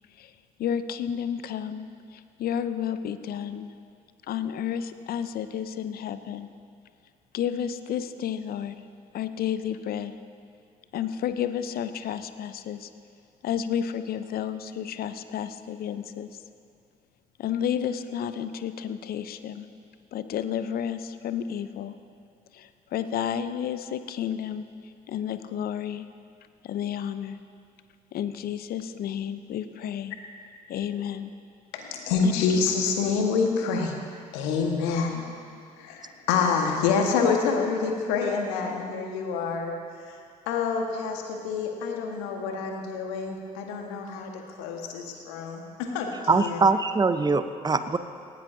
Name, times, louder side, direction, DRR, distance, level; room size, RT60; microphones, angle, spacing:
voice 1, 0.6-3.7 4.3-6.5 7.3-8.8 9.1-10.1 10.9-12.9 13.4-16.3 17.4-19.7 20.1-22.0 22.5-24.6 25.1-26.1 26.6-27.4 28.1-30.1 30.7-31.3 32.2-32.6, left 9 dB, 55° left, 12 dB, 0.7 m, -31 dB
voice 2, 31.7-34.0 34.3-35.2 35.8-39.8 40.5-44.3 44.6-46.6, left 5 dB, 75° left, 2 dB, 1.5 m, -27 dB
voice 3, 46.3-48.0, right 4 dB, 20° right, 11 dB, 0.8 m, -22 dB
18.5 x 15.5 x 2.8 m, 2.3 s
hypercardioid pair, 50°, 19 cm